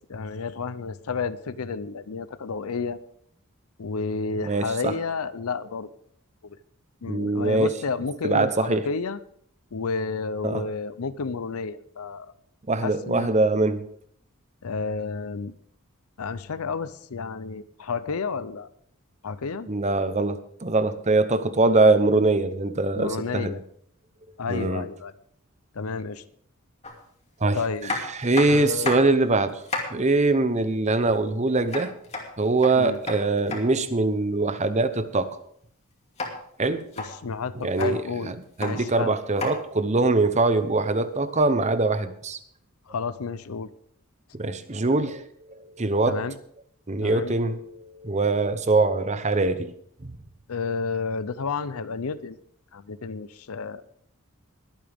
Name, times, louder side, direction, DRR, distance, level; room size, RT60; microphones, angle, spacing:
voice 1, 0.1-3.0 3.8-5.9 6.4-6.6 7.0-9.2 9.7-12.3 12.8-13.3 14.6-15.5 16.2-18.7 19.2-19.7 22.9-23.6 24.4-25.1 25.7-26.2 27.5-27.9 28.5-29.0 32.7-33.0 37.0-38.3 38.6-39.2 42.9-43.7 46.1-46.4 47.0-47.3 50.5-52.4 52.7-53.8, left 4 dB, 80° left, 15 dB, 0.6 m, -31 dB
voice 2, 4.4-4.9 7.1-7.7 8.2-8.9 10.4-10.7 12.7-13.8 19.7-23.6 24.5-24.9 27.4-27.6 28.1-29.6 29.9-31.9 32.4-35.4 36.6-36.8 37.6-42.4 44.3-46.2 46.9-49.7 50.0-50.1, right 3 dB, 30° right, 11 dB, 0.8 m, -23 dB
sound 1, 26.8-27.0 27.8-29.2 29.5-30.0 31.7-33.6 36.2-36.3 36.8-37.1 37.6-37.9 38.4-38.7 39.4-39.5 40.8-40.9, left 3 dB, 30° left, 2.5 m, -31 dB
21.0 x 8.9 x 3.6 m, 0.65 s
head